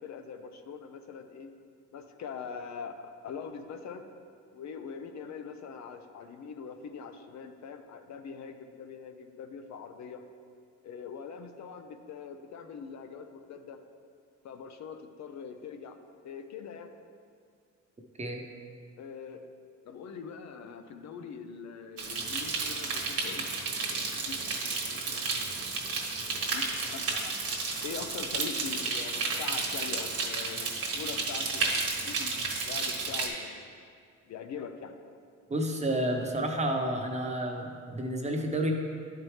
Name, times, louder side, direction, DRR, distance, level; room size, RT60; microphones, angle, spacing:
voice 1, 0.0-1.5 1.9-4.1 4.5-10.2 10.8-13.8 14.4-16.0 16.2-16.9 19.0-19.5 19.9-24.4 24.7-25.2 25.5-25.6 26.3-26.6 26.9-27.4 27.8-33.7 34.3-35.0, left 6 dB, 65° left, 7 dB, 0.6 m, -43 dB
sound 1, 22.0-33.3, right 3 dB, 50° right, 1.3 m, -32 dB
voice 2, 35.5-38.7, right 1 dB, 20° right, 2 dB, 0.9 m, -30 dB
10.5 x 4.6 x 3.2 m, 2.2 s
cardioid pair, 90°, 30 cm